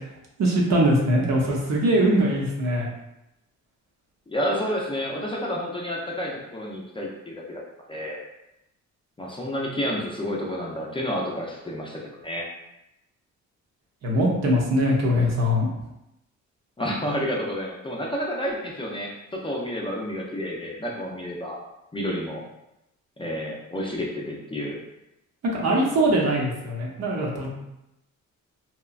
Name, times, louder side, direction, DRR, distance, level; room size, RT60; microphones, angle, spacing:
voice 1, 0.4-2.9 14.0-15.7 25.5-27.5, equal, 60° right, -2 dB, 0.8 m, -22 dB
voice 2, 4.3-7.6 7.9-8.2 9.2-12.4 16.8-21.6 21.9-22.4 23.2-24.8, equal, 15° left, -2 dB, 0.5 m, -30 dB
2.9 x 2.2 x 2.4 m, 0.89 s
cardioid pair, 90°, 30 cm